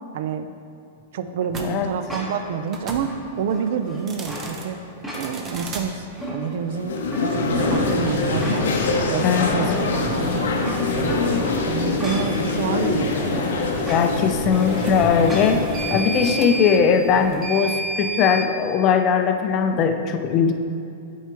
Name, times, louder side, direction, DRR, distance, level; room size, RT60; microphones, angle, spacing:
voice 1, 0.1-0.6 1.1-4.8 5.1-8.7 9.1-10.5 10.9-11.3 11.6-13.6, right 6 dB, 60° right, 9 dB, 0.4 m, -28 dB
sound 1, 1.5-1.7 2.7-3.1 4.0-4.7 5.1-5.9 7.5-18.5, equal, 25° right, 0.7 m, -30 dB
sound 2, 2.1-2.5 3.0-4.5 4.9-5.6 6.0-6.7 7.1-8.9 9.3-9.4 10.4-12.4 13.8-14.1 15.3-15.6, left 1 dB, 10° right, 1.3 m, -34 dB
sound 3, 6.7-16.7, left 3 dB, 85° left, 0.7 m, -25 dB
voice 2, 13.9-15.6 15.9-20.5, left 6 dB, 35° left, 6 dB, 0.5 m, -20 dB
8.9 x 4.7 x 3.0 m, 2.6 s
hypercardioid pair, 145°, 0 cm